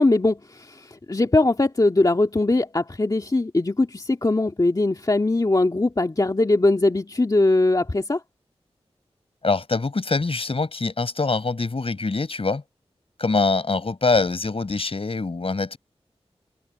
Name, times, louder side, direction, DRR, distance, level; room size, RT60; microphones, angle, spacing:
voice 1, 0.0-8.2, left 2 dB, 35° left, 2.1 m, -21 dB
voice 2, 9.4-12.6 13.2-15.8, left 3 dB, 60° left, 5.3 m, -24 dB
open air
wide cardioid pair, 55°, 11 cm